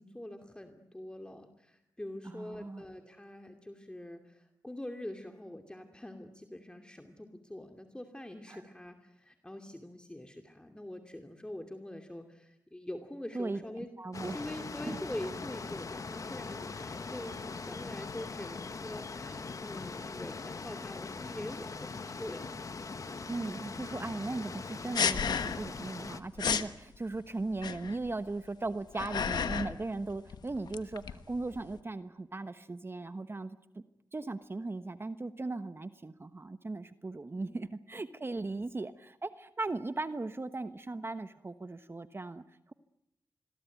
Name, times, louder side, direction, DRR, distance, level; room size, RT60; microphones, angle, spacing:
voice 1, 0.0-13.9 14.3-22.5 37.4-37.7 38.3-38.7, left 1 dB, 15° left, 4 dB, 2.6 m, -44 dB
voice 2, 2.3-2.8 8.5-8.6 13.3-14.4 14.9-15.0 23.3-33.8 34.1-42.7, right 2 dB, 35° right, 11 dB, 1.2 m, -38 dB
sound 1, 14.1-26.2, left 4 dB, 55° left, 1.5 m, -41 dB
sound 2, 25.0-25.8 26.1-26.2 26.4-26.7 27.6-28.1 28.7-29.8 30.1-31.7, left 7 dB, 85° left, 1.3 m, -32 dB
26.5 x 21.5 x 9.3 m, 0.87 s
cardioid pair, 55°, 7 cm